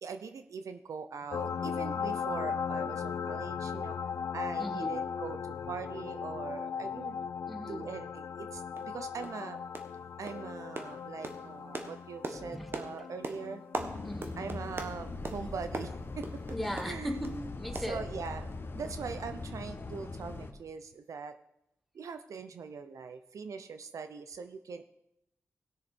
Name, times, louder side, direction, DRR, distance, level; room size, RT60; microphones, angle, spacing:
voice 1, 0.0-4.0 4.3-7.2 7.7-9.6 10.2-13.6 14.4-16.2 16.8-17.2 17.9-18.5 18.7-21.4 21.9-24.8, right 5 dB, 75° right, 9 dB, 0.6 m, -41 dB
sound 1, 1.3-18.5 20.1-20.2, left 7 dB, 65° left, 0.4 m, -39 dB
voice 2, 4.6-5.0 7.5-7.9 12.3-12.7 14.0-14.4 16.5-18.1, equal, ahead, 3 dB, 1.8 m, -38 dB
sound 2, 8.2-8.3 8.8-8.9 9.2-9.4 9.7-10.0 10.3-17.4 17.8-18.5 18.8-18.9 19.3-19.4, right 2 dB, 45° right, 1.4 m, -42 dB
Bus, 13.8-20.5, left 3 dB, 40° left, 1.1 m, -41 dB
17.0 x 6.4 x 4.3 m, 0.80 s
cardioid pair, 55°, 6 cm